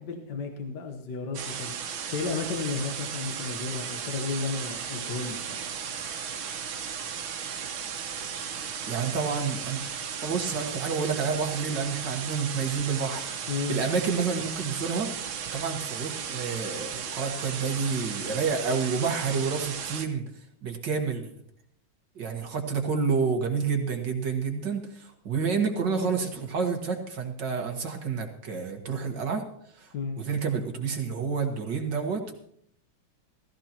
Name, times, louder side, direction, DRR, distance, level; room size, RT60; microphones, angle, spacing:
voice 1, 0.0-1.7 2.1-5.6 13.5-13.8 29.9-30.2, left 4 dB, 55° left, 4 dB, 1.8 m, -33 dB
sound 1, 1.3-20.1, right 7 dB, 85° right, 1.9 m, -35 dB
voice 2, 8.9-9.8 10.2-15.1 15.5-20.2 20.6-21.3 22.2-29.4 29.8-32.3, right 5 dB, 60° right, 3 dB, 2.1 m, -29 dB
16.0 x 15.5 x 3.0 m, 0.68 s
omnidirectional pair, 2.2 m